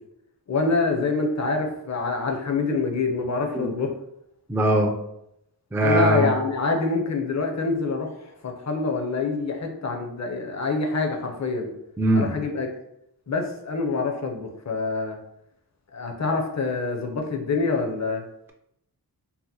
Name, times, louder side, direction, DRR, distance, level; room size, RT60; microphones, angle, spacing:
voice 1, 0.5-3.9 5.8-8.1 8.4-11.7 12.1-12.7 13.3-15.2 15.9-18.2, left 3 dB, 45° left, 3 dB, 0.6 m, -26 dB
voice 2, 4.5-4.9 5.7-6.3 12.0-12.3, right 1 dB, 5° right, 2 dB, 0.3 m, -20 dB
2.8 x 2.1 x 3.8 m, 0.78 s
wide cardioid pair, 95°, 40 cm